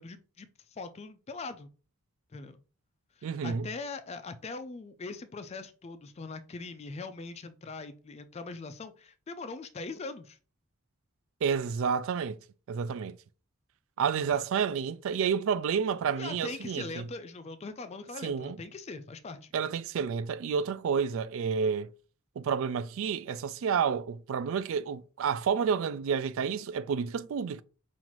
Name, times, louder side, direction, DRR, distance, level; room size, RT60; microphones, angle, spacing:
voice 1, 0.0-1.7 2.3-2.6 3.2-10.4 14.3-14.4 16.1-19.5, left 3 dB, 30° left, 0.3 m, -41 dB
voice 2, 3.2-3.7 11.4-12.4 12.7-13.2 14.0-17.1 18.2-18.6 19.5-21.9 22.4-27.6, right 6 dB, 60° right, 0.3 m, -30 dB
5.6 x 2.5 x 3.0 m
head